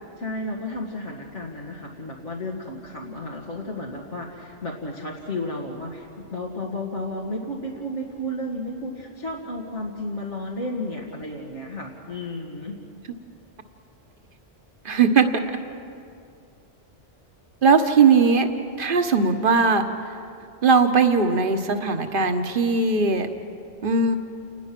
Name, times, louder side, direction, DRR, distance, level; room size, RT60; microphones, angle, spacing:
voice 1, 0.2-12.8, left 1 dB, 80° left, -4 dB, 2.5 m, -33 dB
voice 2, 14.8-15.3 17.6-18.5 18.8-19.8 20.6-23.3 23.8-24.2, right 4 dB, 50° right, 6 dB, 1.4 m, -19 dB
29.5 x 20.5 x 6.1 m, 2.4 s
omnidirectional pair, 1.2 m